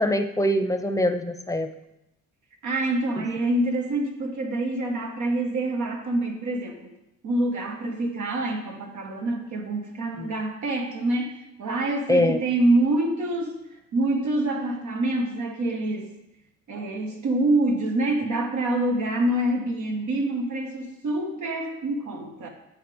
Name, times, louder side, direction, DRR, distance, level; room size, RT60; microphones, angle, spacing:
voice 1, 0.0-1.7 10.2-10.3 12.1-12.4, left 1 dB, 10° left, 7 dB, 0.7 m, -23 dB
voice 2, 2.6-6.9 7.2-13.6 13.9-16.1 16.7-22.5, right 2 dB, 70° right, 2 dB, 1.7 m, -26 dB
10.5 x 7.3 x 3.5 m, 0.89 s
cardioid pair, 90°, 30 cm